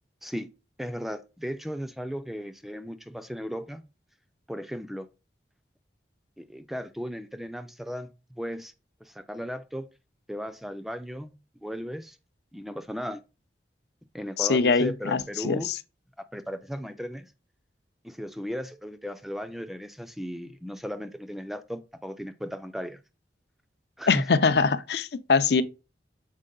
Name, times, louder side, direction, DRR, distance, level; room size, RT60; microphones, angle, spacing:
voice 1, 0.8-3.8 4.5-5.1 6.4-8.7 9.0-9.9 10.3-11.3 11.6-12.2 12.5-13.2 14.1-15.7 16.3-17.3 18.0-23.0 24.0-24.3, equal, ahead, 0.3 m, -36 dB
voice 2, 14.4-15.8 24.1-25.6, left 4 dB, 65° left, 0.5 m, -23 dB
6.6 x 4.5 x 3.7 m
head